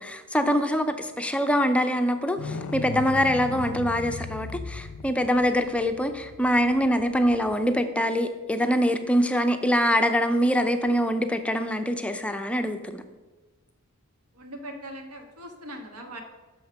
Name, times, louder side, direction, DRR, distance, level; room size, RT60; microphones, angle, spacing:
voice 1, 0.0-13.0, equal, 5° left, 7 dB, 0.5 m, -24 dB
sound 1, 2.4-7.8 10.9-11.0, left 3 dB, 75° left, 0.5 m, -37 dB
voice 2, 14.3-16.2, right 1 dB, 80° right, 3 dB, 1.3 m, -40 dB
6.3 x 5.6 x 5.8 m, 1.3 s
head